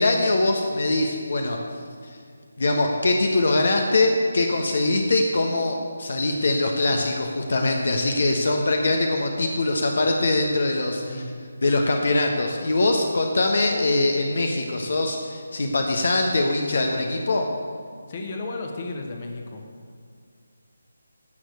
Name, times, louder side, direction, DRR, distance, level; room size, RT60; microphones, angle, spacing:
voice 1, 0.0-1.6 2.6-11.2 11.6-17.5, left 2 dB, 55° left, 2 dB, 1.3 m, -22 dB
voice 2, 18.1-19.6, left 3 dB, 35° left, 3 dB, 1.6 m, -33 dB
16.0 x 6.5 x 8.1 m, 2.1 s
figure-of-eight pair, 150°, 0 cm